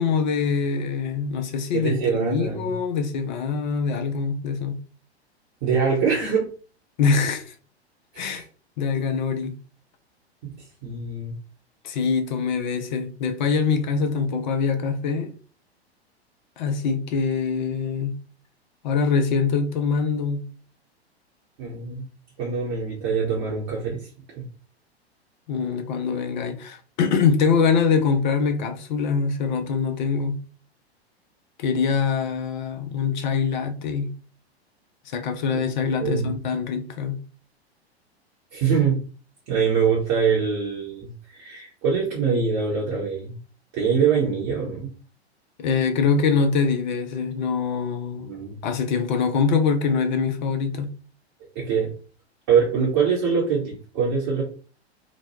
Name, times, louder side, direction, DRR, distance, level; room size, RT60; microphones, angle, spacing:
voice 1, 0.0-4.8 7.0-7.4 8.2-8.4 8.8-9.5 11.8-15.3 16.6-18.2 18.8-20.4 25.5-30.4 31.6-34.1 35.1-37.2 45.6-48.3 48.6-50.9, left 5 dB, 45° left, 0.6 m, -24 dB
voice 2, 1.7-2.7 5.6-6.5 8.1-8.4 10.4-10.5 10.8-11.3 21.6-22.0 22.4-24.0 24.3-24.4 36.0-36.3 38.5-39.0 39.5-43.4 43.7-44.9 48.2-48.6 51.5-51.9 52.5-54.4, right 6 dB, 35° right, 0.9 m, -24 dB
3.0 x 2.1 x 2.8 m
figure-of-eight pair, 100°, 33 cm